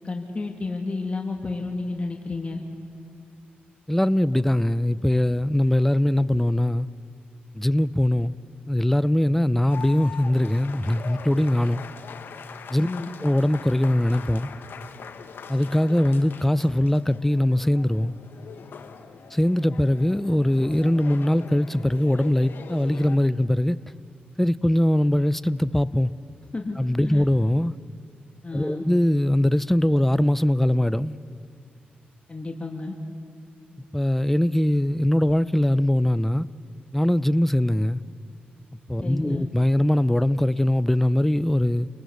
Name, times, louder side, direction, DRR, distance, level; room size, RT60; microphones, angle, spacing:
voice 1, 0.0-2.6 12.8-13.1 26.5-27.2 28.4-28.8 32.3-32.9 39.0-39.4, left 3 dB, 35° left, 2.3 m, -31 dB
voice 2, 3.9-6.9 7.5-8.3 8.7-11.8 12.7-12.9 13.2-14.5 15.5-18.1 19.3-23.8 24.4-26.1 26.8-27.8 28.5-31.2 33.9-36.5 36.9-38.0 38.9-41.9, left 1 dB, 5° left, 0.7 m, -21 dB
sound 1, 9.7-23.2, left 6 dB, 75° left, 1.4 m, -42 dB
29.0 x 18.5 x 8.2 m
cardioid pair, 60°, 4 cm